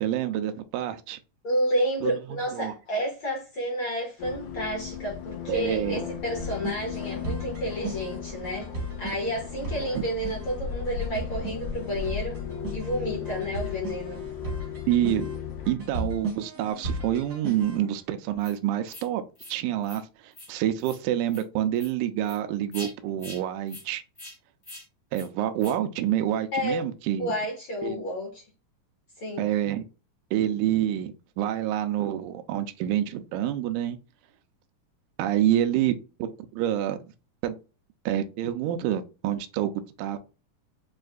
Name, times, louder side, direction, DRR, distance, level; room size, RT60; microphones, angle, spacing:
voice 1, 0.0-1.2 2.0-2.7 5.5-6.1 10.0-10.1 14.9-15.3 15.7-19.2 19.5-24.0 25.1-27.3 27.8-28.0 29.4-29.9 30.3-34.0 35.2-37.0 37.4-37.6 38.1-40.2, right 11 dB, 80° right, 1.8 m, -27 dB
voice 2, 1.4-8.7 9.0-12.4 12.7-14.2 26.5-26.8 27.2-28.4 29.2-29.4, equal, 50° left, 1.7 m, -30 dB
sound 1, 4.2-15.7, left 7 dB, 75° left, 1.4 m, -36 dB
sound 2, 6.4-17.9, right 2 dB, 45° right, 1.1 m, -37 dB
sound 3, 18.4-18.5 18.9-19.1 19.3-19.5 19.8-20.0 20.3-20.5 20.8-21.0 21.3-21.4 21.7-21.9 22.2-22.4 22.7-22.9 23.2-23.4 23.7-23.8 24.1-24.3 24.6-24.8 25.1-25.3 25.6-25.7, left 1 dB, 25° left, 1.0 m, -43 dB
6.4 x 2.5 x 2.4 m
omnidirectional pair, 4.0 m